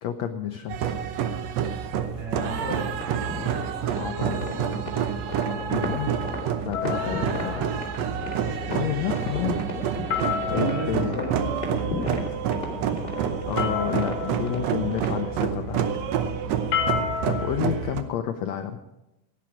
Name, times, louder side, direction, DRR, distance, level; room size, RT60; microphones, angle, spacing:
voice 1, 0.0-0.9 4.0-4.4 5.7-6.2 6.6-7.7 8.1-8.2 8.7-9.6 10.5-11.2 13.2-15.9 17.3-18.8, left 10 dB, 85° left, 7 dB, 1.5 m, -30 dB
sound 1, 0.7-18.0, right 8 dB, 70° right, 1.7 m, -28 dB
voice 2, 2.1-2.9 3.2-3.5 4.1-5.1 8.3-9.1 10.4-12.1, right 2 dB, 20° right, -6 dB, 3.4 m, -35 dB
sound 2, 2.5-15.3, left 2 dB, 20° left, 2.4 m, -35 dB
sound 3, 6.7-17.5, left 8 dB, 60° left, 2.6 m, -34 dB
17.0 x 10.5 x 5.0 m, 0.93 s
omnidirectional pair, 4.0 m